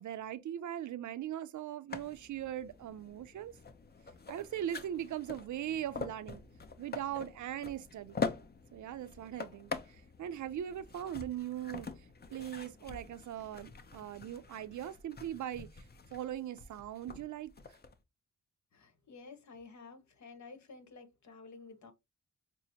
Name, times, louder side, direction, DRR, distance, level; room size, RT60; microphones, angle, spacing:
voice 1, 0.0-3.5 4.3-6.4 6.8-8.2 8.7-11.9 12.3-15.8 16.1-17.5, right 11 dB, 75° right, 0.5 m, -40 dB
sound 1, 1.9-17.9, left 4 dB, 35° left, 0.6 m, -44 dB
voice 2, 18.7-21.9, left 4 dB, 65° left, 1.2 m, -52 dB
6.0 x 2.0 x 2.7 m
wide cardioid pair, 105°, 30 cm